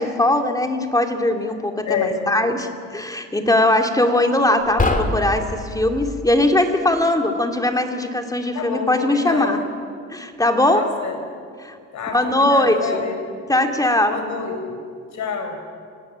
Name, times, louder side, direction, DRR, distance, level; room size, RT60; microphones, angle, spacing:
voice 1, 0.0-9.6 10.1-10.9 11.6-11.8 12.1-13.0 13.5-14.2, left 1 dB, 10° left, 4 dB, 2.7 m, -20 dB
voice 2, 1.8-2.2 8.5-9.6 10.7-11.1 11.9-13.4 14.1-14.8 15.1-15.6, left 5 dB, 70° left, 5 dB, 5.3 m, -27 dB
sound 1, 4.6-6.3, left 2 dB, 25° left, 3.1 m, -24 dB
26.0 x 18.5 x 8.9 m, 2.2 s
cardioid pair, 90°, 30 cm